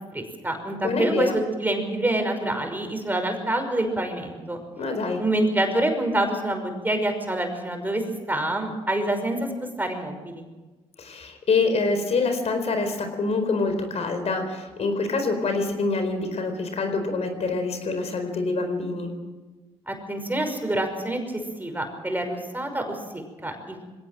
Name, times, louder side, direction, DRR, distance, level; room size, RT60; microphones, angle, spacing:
voice 1, 0.1-4.6 5.2-8.0 8.3-9.5 9.8-10.4 19.9-23.8, right 1 dB, 15° right, 5 dB, 5.7 m, -27 dB
voice 2, 0.8-1.4 4.8-5.2 11.0-19.1, left 3 dB, 60° left, 6 dB, 4.5 m, -26 dB
21.5 x 17.0 x 7.8 m, 1.2 s
supercardioid pair, 60°, 13 cm